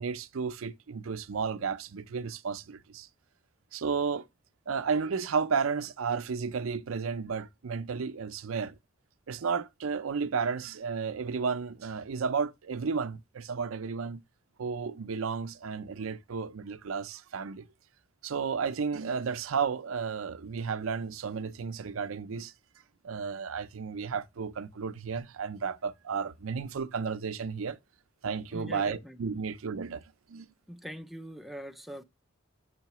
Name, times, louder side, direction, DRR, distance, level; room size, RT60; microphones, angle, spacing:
voice 1, 0.0-3.1 3.7-4.3 4.7-8.7 9.3-14.2 14.6-17.6 18.2-22.5 23.0-27.8 28.2-30.0 30.3-30.5, right 5 dB, 90° right, 0.5 m, -33 dB
voice 2, 28.5-29.2 30.7-32.0, equal, ahead, 0.5 m, -42 dB
7.5 x 5.6 x 2.9 m
head